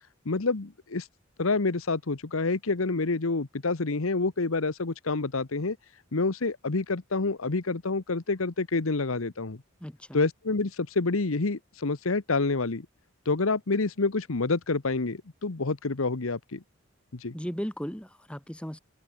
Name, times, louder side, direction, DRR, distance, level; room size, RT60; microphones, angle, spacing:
voice 1, 0.2-1.1 1.4-5.8 6.1-9.6 10.1-12.9 13.3-16.6 17.1-17.3, left 3 dB, 85° left, 1.1 m, -28 dB
voice 2, 9.8-10.2 17.3-18.8, equal, 5° left, 1.9 m, -36 dB
head